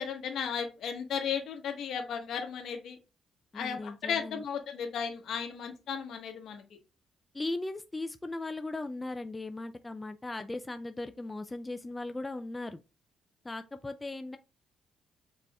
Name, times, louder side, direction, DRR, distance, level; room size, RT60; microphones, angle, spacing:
voice 1, 0.0-3.0 3.5-6.6, left 7 dB, 70° left, 1.2 m, -35 dB
voice 2, 3.5-4.4 7.3-12.8 13.4-14.4, left 2 dB, 20° left, 0.3 m, -38 dB
5.3 x 4.1 x 2.3 m
cardioid pair, 90°, 0 cm